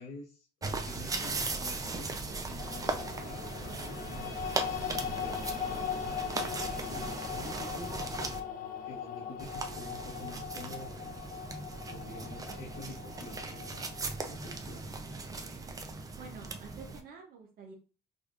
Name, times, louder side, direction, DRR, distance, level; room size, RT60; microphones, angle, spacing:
voice 1, 0.0-4.4 5.0-8.0 8.8-11.1 11.9-13.8 14.2-14.9, left 2 dB, 80° left, -4 dB, 1.0 m, -48 dB
sound 1, 0.6-8.4 9.4-17.0, right 3 dB, 20° right, 0.5 m, -38 dB
sound 2, 2.6-14.8, left 8 dB, 55° left, 0.6 m, -40 dB
voice 2, 16.1-17.7, right 5 dB, 60° right, 0 dB, 0.8 m, -48 dB
5.0 x 2.5 x 2.5 m, 0.36 s
cardioid pair, 110°, 17 cm